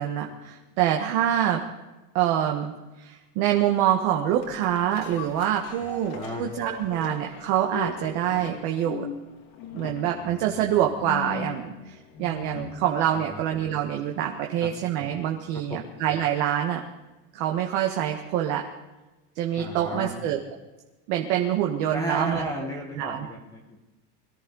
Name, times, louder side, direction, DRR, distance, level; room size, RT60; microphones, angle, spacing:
voice 1, 0.0-1.6 2.1-2.7 3.0-9.1 9.7-16.8 17.3-18.7 19.3-20.4 21.1-22.4 23.0-23.3, right 10 dB, 50° right, 2 dB, 1.5 m, -26 dB
sound 1, 4.4-13.0 13.4-13.5, left 6 dB, 50° left, 2.6 m, -39 dB
voice 2, 5.8-6.4 13.1-13.4 14.6-14.7 15.7-15.8 19.6-20.1 21.9-23.8, right 1 dB, 5° left, 0 dB, 1.5 m, -34 dB
22.0 x 14.0 x 4.0 m, 1.1 s
supercardioid pair, 160°, 49 cm